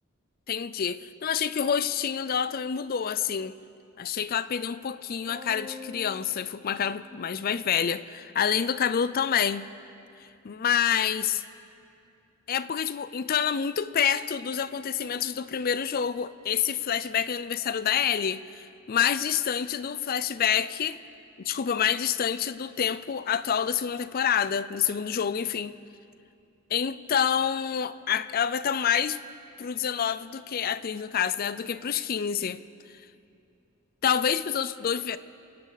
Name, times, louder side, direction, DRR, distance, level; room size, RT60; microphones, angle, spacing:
voice 1, 0.5-3.5 4.0-9.7 10.4-11.4 12.5-21.0 21.4-25.7 26.7-29.2 29.6-32.6 34.0-35.2, left 8 dB, 45° left, 0.4 m, -27 dB
sound 1, 5.3-7.9, left 2 dB, 25° right, 1.7 m, -46 dB
28.0 x 11.5 x 4.0 m
head